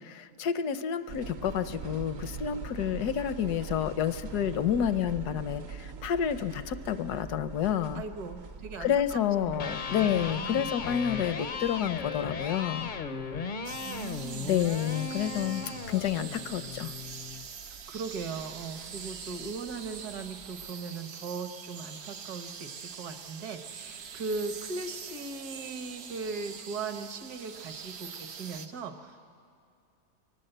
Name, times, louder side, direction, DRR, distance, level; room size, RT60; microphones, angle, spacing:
voice 1, 0.0-8.0 8.8-12.9 14.5-15.6 15.9-16.9, left 9 dB, 80° left, 12 dB, 1.3 m, -29 dB
sound 1, 1.1-20.7, right 5 dB, 55° right, 0.7 m, -45 dB
voice 2, 7.9-10.7 13.8-14.6 17.7-29.3, right 4 dB, 75° right, 7 dB, 1.7 m, -39 dB
Electric guitar, 9.4-17.5, left 5 dB, 55° left, 0.5 m, -37 dB
sound 2, 13.6-28.7, right 7 dB, 90° right, 1.6 m, -44 dB
24.0 x 19.0 x 7.9 m, 2.3 s
omnidirectional pair, 1.7 m